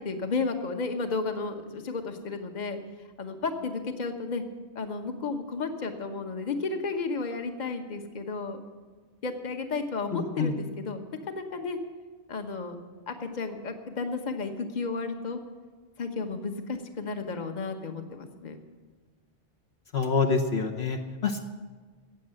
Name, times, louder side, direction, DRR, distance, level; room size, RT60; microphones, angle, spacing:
voice 1, 0.0-2.8 3.2-4.4 4.7-8.6 9.2-11.8 12.3-12.8 13.1-15.4 16.0-18.6, left 4 dB, 40° left, 5 dB, 1.2 m, -33 dB
voice 2, 10.1-10.5 19.9-21.4, left 5 dB, 60° left, 2 dB, 1.2 m, -27 dB
14.5 x 8.7 x 7.7 m, 1.4 s
omnidirectional pair, 1.2 m